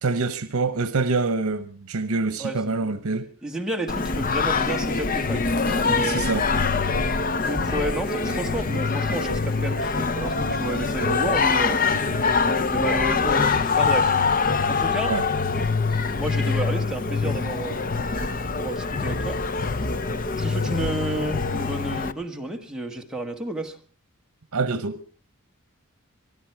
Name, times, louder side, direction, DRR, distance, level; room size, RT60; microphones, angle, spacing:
voice 1, 0.0-3.3 6.0-6.5 15.1-15.3 24.5-25.0, right 3 dB, 85° right, 0.9 m, -25 dB
voice 2, 2.4-2.7 3.4-6.2 7.4-11.9 12.7-14.1 14.7-15.1 16.1-17.9 18.6-19.4 20.4-23.8, right 2 dB, 5° right, 1.7 m, -31 dB
Singing, 3.9-22.1, left 4 dB, 40° left, 0.7 m, -24 dB
23.5 x 12.5 x 4.7 m
head